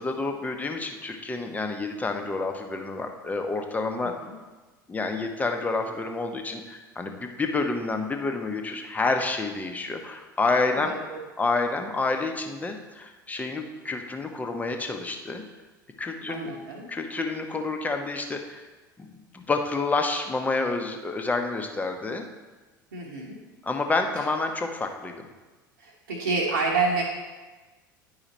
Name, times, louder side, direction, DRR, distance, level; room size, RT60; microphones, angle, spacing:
voice 1, 0.0-4.1 4.9-10.9 11.4-15.4 16.0-16.5 16.9-18.7 19.0-19.1 19.3-22.2 23.6-25.3, left 3 dB, 15° left, 4 dB, 0.9 m, -29 dB
voice 2, 10.7-11.2 16.3-16.9 22.9-23.4 25.8-27.0, right 3 dB, 70° right, -4 dB, 1.1 m, -28 dB
10.0 x 4.9 x 4.2 m, 1.2 s
figure-of-eight pair, 75°, 11 cm